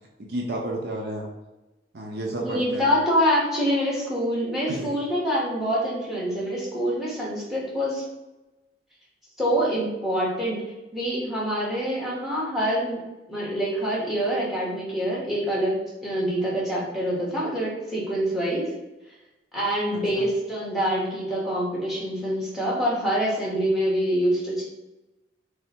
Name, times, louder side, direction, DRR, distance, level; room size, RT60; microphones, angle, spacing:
voice 1, 0.2-1.3 1.9-2.8 4.7-4.9 19.9-20.3, right 1 dB, 60° right, 0 dB, 0.6 m, -31 dB
voice 2, 2.4-8.0 9.4-10.6 10.9-13.0 13.3-15.7 16.0-18.6 19.5-24.6, equal, ahead, -6 dB, 1.5 m, -25 dB
3.5 x 3.4 x 4.4 m, 1.0 s
head